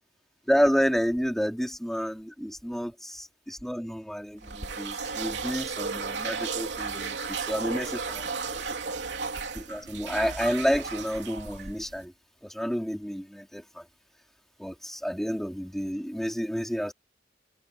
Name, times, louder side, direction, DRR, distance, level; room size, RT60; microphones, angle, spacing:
voice 1, 0.5-8.9 9.5-12.1 12.4-13.8 14.6-16.9, equal, ahead, 3.4 m, -30 dB
sound 1, 4.4-12.0, right 4 dB, 80° right, 3.2 m, -34 dB
head